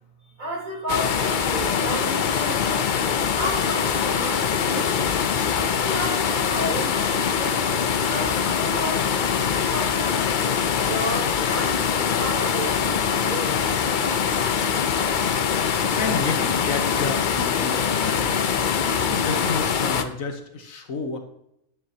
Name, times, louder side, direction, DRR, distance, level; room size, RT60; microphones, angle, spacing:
voice 1, 0.2-2.9 3.3-5.0 5.6-9.1 9.7-14.3, equal, 80° right, -4 dB, 3.9 m, -33 dB
sound 1, 0.9-20.0, left 7 dB, 50° left, 0.6 m, -23 dB
voice 2, 15.6-18.5 19.1-21.2, left 4 dB, 85° left, 5 dB, 1.6 m, -31 dB
10.5 x 10.5 x 2.9 m, 0.78 s
omnidirectional pair, 1.4 m